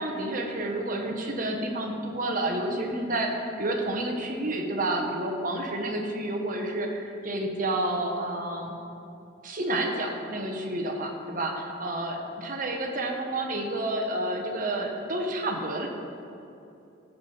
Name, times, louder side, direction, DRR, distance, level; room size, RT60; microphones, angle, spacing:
voice 1, 0.0-8.7 9.4-15.9, right 1 dB, 45° right, 2 dB, 1.1 m, -30 dB
14.0 x 6.0 x 4.0 m, 2.8 s
head